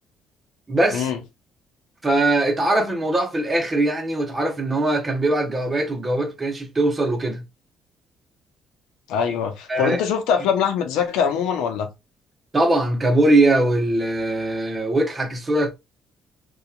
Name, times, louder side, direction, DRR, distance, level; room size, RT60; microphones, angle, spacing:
voice 1, 0.7-1.1 2.0-7.4 9.7-10.0 12.5-15.7, right 2 dB, 25° right, 0.8 m, -21 dB
voice 2, 9.1-11.9, left 7 dB, 90° left, 0.6 m, -23 dB
2.8 x 2.3 x 2.3 m
cardioid pair, 100°, 0 cm